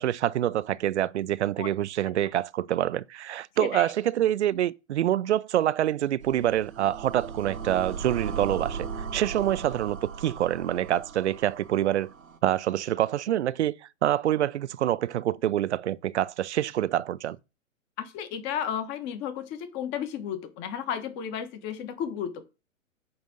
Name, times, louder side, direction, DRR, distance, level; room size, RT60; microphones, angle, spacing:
voice 1, 0.0-8.9 9.1-12.1 12.4-17.4, right 12 dB, 60° right, 0.6 m, -26 dB
sound 1, 6.2-12.4, right 6 dB, 85° right, 1.4 m, -37 dB
voice 2, 18.0-22.4, left 9 dB, 25° left, 1.4 m, -33 dB
9.4 x 3.5 x 6.6 m
figure-of-eight pair, 125°, 40 cm